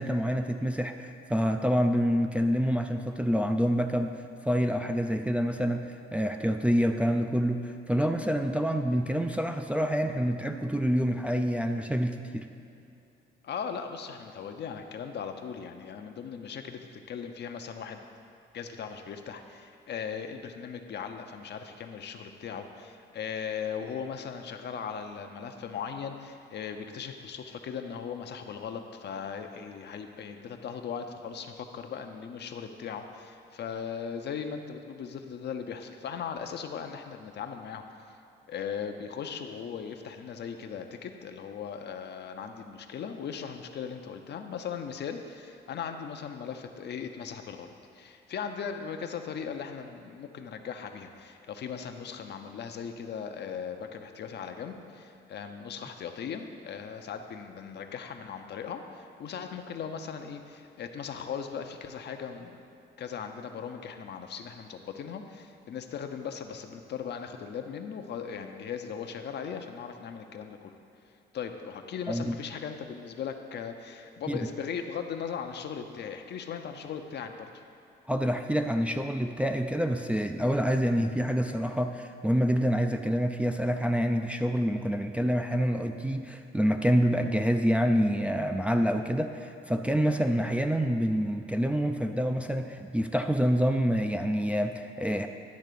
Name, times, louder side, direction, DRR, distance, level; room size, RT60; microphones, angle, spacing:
voice 1, 0.0-4.1 4.5-12.5 72.1-72.3 74.3-74.4 78.1-95.3, equal, 5° right, 5 dB, 0.4 m, -27 dB
voice 2, 13.4-18.0 18.5-37.8 38.5-62.6 63.0-70.7 71.3-77.6, left 7 dB, 60° left, 6 dB, 0.7 m, -38 dB
10.5 x 3.6 x 6.8 m, 2.7 s
cardioid pair, 90°, 20 cm